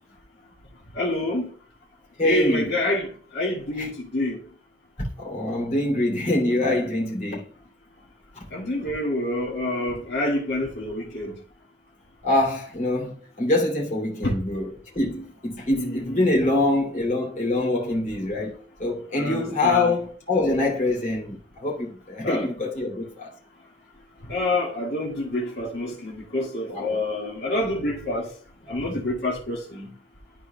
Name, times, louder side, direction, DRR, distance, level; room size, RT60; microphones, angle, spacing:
voice 1, 0.9-1.5 2.2-4.4 8.5-11.3 14.2-14.4 15.7-16.3 19.1-20.0 22.2-22.5 24.2-28.3 28.7-29.9, left 1 dB, 70° left, 1.9 m, -27 dB
voice 2, 2.2-2.7 3.8-3.9 5.0-7.5 12.2-18.5 18.8-23.3 26.7-27.0, left 2 dB, 40° left, 2.7 m, -25 dB
12.5 x 4.5 x 2.2 m
head